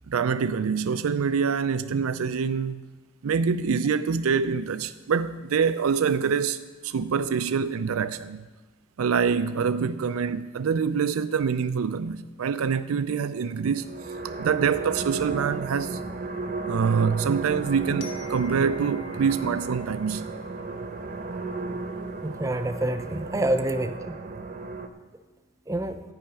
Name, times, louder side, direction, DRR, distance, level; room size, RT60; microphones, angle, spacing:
voice 1, 0.1-2.8 3.2-8.5 9.0-13.9 14.4-16.0 16.7-20.3, right 6 dB, 90° right, 0.4 m, -25 dB
sound 1, 13.5-24.9, right 3 dB, 40° right, 0.8 m, -34 dB
Glockenspiel, 18.0-20.9, left 4 dB, 70° left, 1.3 m, -48 dB
voice 2, 22.2-24.2 25.7-26.0, right 1 dB, 15° right, 0.5 m, -27 dB
12.0 x 5.7 x 8.9 m
head